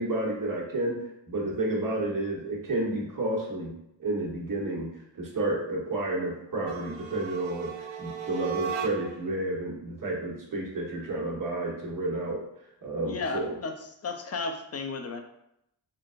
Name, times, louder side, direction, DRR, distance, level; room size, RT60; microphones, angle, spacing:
voice 1, 0.0-4.9 5.2-12.4 12.8-13.5, right 2 dB, 45° right, -3 dB, 1.2 m, -31 dB
sound 1, 6.5-9.3, right 7 dB, 70° right, 0.5 m, -36 dB
voice 2, 13.1-15.2, left 4 dB, 35° left, 5 dB, 0.5 m, -34 dB
3.8 x 2.2 x 2.5 m, 0.80 s
supercardioid pair, 45°, 47 cm